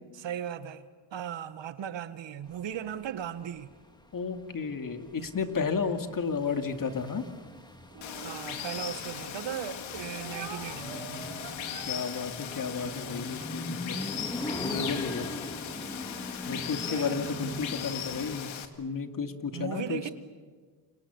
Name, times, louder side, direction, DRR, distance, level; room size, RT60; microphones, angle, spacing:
voice 1, 0.2-0.8 1.1-3.7 8.1-11.2 16.8-17.6 19.5-20.1, right 9 dB, 70° right, 1.5 m, -37 dB
sound 1, 2.5-18.4, left 1 dB, 10° left, 2.1 m, -42 dB
voice 2, 4.1-7.2 11.9-14.0 14.6-15.3 16.4-20.1, left 5 dB, 45° left, 2.3 m, -32 dB
Speech, 7.9-9.5 10.1-14.1, right 5 dB, 50° right, 4.5 m, -47 dB
Water, 8.0-18.7, left 9 dB, 80° left, 2.1 m, -38 dB
28.5 x 26.0 x 7.1 m
cardioid pair, 95°, 46 cm